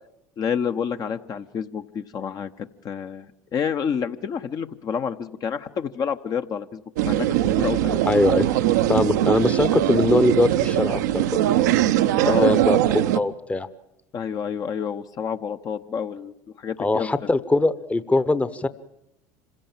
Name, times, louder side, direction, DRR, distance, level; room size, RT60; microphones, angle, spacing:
voice 1, 0.4-7.9 12.2-12.6 14.1-17.1, left 7 dB, 40° left, 8 dB, 0.9 m, -29 dB
sound 1, 7.0-13.2, right 13 dB, 75° right, 0.8 m, -21 dB
voice 2, 8.1-8.5 8.9-11.4 12.4-13.7 16.8-18.7, left 2 dB, 15° left, 14 dB, 0.9 m, -22 dB
26.5 x 16.5 x 7.4 m, 0.82 s
hypercardioid pair, 80°, 9 cm